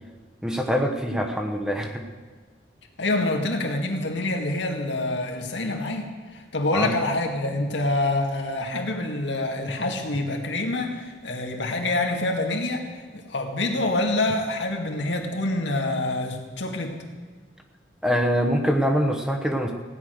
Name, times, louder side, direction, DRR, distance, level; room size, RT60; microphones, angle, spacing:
voice 1, 0.4-2.0 6.7-6.9 18.0-19.7, equal, 5° right, 2 dB, 1.1 m, -24 dB
voice 2, 3.0-6.1 6.3-12.8 13.1-17.0, left 2 dB, 80° left, 2 dB, 2.0 m, -26 dB
16.0 x 9.7 x 6.4 m, 1.5 s
head